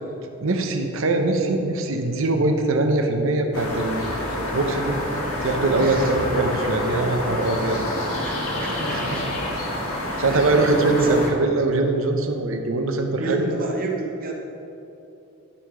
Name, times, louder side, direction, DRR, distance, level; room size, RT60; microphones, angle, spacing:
voice 1, 0.4-4.0 4.4-5.0 5.4-7.8 10.2-13.5, right 2 dB, 70° right, 4 dB, 0.8 m, -22 dB
sound 1, 3.5-11.3, left 1 dB, 90° left, 1.9 m, -28 dB
voice 2, 5.8-6.1 8.2-9.3 10.3-10.7 11.0-11.3 13.1-14.3, right 2 dB, 40° right, 0 dB, 1.0 m, -30 dB
11.5 x 5.6 x 5.0 m, 2.8 s
head